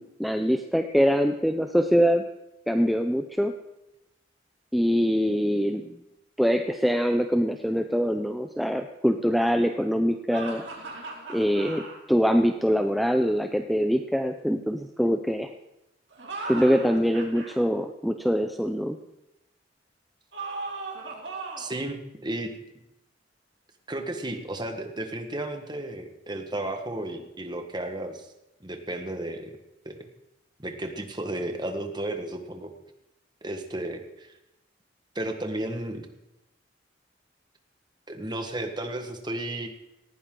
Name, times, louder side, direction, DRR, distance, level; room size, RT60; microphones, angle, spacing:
voice 1, 0.0-2.2 2.7-3.5 4.7-5.8 6.4-10.6 11.3-11.8 12.1-15.5 16.4-19.0, equal, ahead, 5 dB, 0.5 m, -24 dB
sound 1, 10.3-12.0 16.1-17.5 20.3-21.8, right 3 dB, 65° right, 2.8 m, -37 dB
voice 2, 21.6-22.5 23.9-28.3 28.6-29.6 29.8-30.0 30.6-32.7 33.4-34.3 35.1-36.1 38.1-39.7, right 1 dB, 25° right, 5 dB, 1.5 m, -33 dB
18.5 x 15.5 x 3.8 m, 0.92 s
head